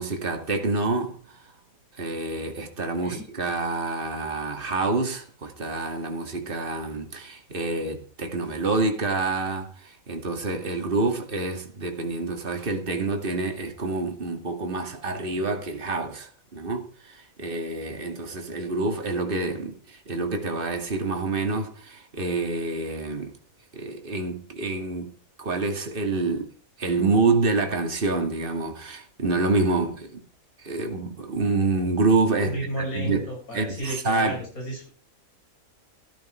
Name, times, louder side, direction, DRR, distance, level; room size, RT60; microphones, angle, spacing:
voice 1, 0.0-1.5 1.9-23.3 23.7-25.1 25.4-26.5 26.8-30.2 30.6-34.4, right 3 dB, 40° right, 2.5 m, -27 dB
voice 2, 32.4-34.9, right 1 dB, 80° left, 6.3 m, -32 dB
15.0 x 14.0 x 4.5 m
omnidirectional pair, 1.5 m